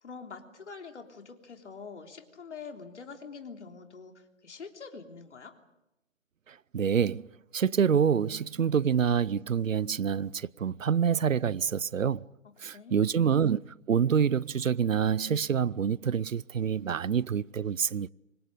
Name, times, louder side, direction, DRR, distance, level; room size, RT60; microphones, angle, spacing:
voice 1, 0.0-5.5 12.4-13.2, left 5 dB, 60° left, 3.5 m, -45 dB
voice 2, 6.5-7.2 7.5-12.3 12.6-13.6 13.9-18.1, right 7 dB, 80° right, 0.8 m, -27 dB
28.0 x 25.0 x 5.2 m
figure-of-eight pair, 155°, 39 cm